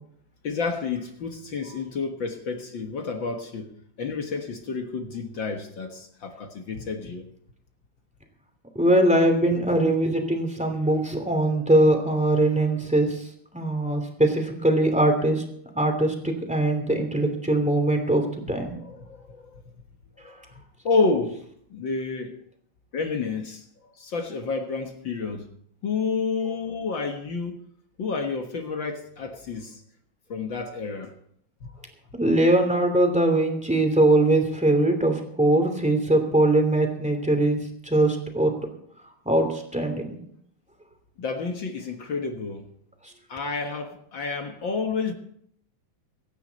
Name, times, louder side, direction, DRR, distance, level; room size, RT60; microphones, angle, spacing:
voice 1, 0.4-3.7 4.0-7.3 18.5-19.6 20.2-20.4 20.8-21.4 21.7-22.4 22.9-25.5 25.8-27.6 28.0-29.8 30.3-31.1 31.6-31.7 41.2-42.7 43.3-45.1, left 4 dB, 50° left, 1.6 m, -30 dB
voice 2, 8.7-13.2 13.5-15.4 15.7-18.7 20.2-20.3 32.1-38.6 39.2-40.2, right 1 dB, ahead, 2.3 m, -21 dB
24.5 x 9.6 x 4.1 m
omnidirectional pair, 3.6 m